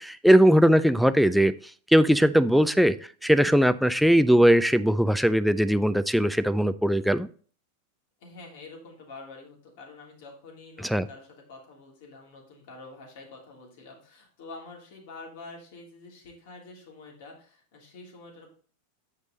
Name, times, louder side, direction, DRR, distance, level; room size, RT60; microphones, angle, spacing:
voice 1, 0.0-1.5 1.9-7.3 10.8-11.1, equal, ahead, 13 dB, 0.4 m, -20 dB
voice 2, 8.2-18.5, left 3 dB, 65° left, -1 dB, 3.1 m, -47 dB
8.2 x 5.4 x 3.9 m, 0.42 s
supercardioid pair, 130°, 0 cm